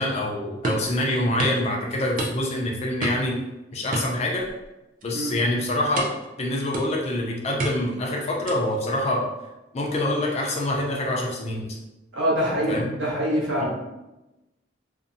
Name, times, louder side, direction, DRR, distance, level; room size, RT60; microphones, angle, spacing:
voice 1, 0.0-3.4 3.7-4.4 5.0-6.1 6.4-9.3 9.7-11.8 12.7-12.9, left 1 dB, 35° left, -2 dB, 0.4 m, -25 dB
sound 1, 0.6-0.9 1.4-1.6 2.2-2.6 3.0-3.4 3.9-4.7 5.0-5.3 6.0-6.3 6.7-7.1 7.6-8.0 8.5-8.8, right 2 dB, 45° right, 0.4 m, -30 dB
voice 2, 12.1-13.8, equal, 80° right, -5 dB, 0.9 m, -25 dB
2.6 x 2.1 x 2.5 m, 0.99 s
head